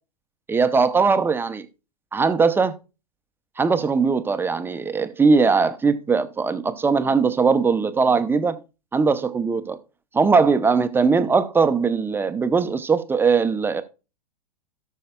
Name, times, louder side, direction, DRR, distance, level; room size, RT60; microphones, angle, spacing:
voice 1, 0.5-1.7 2.1-2.7 3.6-8.6 8.9-9.8 10.1-13.8, right 5 dB, 10° right, 0.7 m, -20 dB
17.0 x 6.5 x 2.3 m
hypercardioid pair, 110°, 21 cm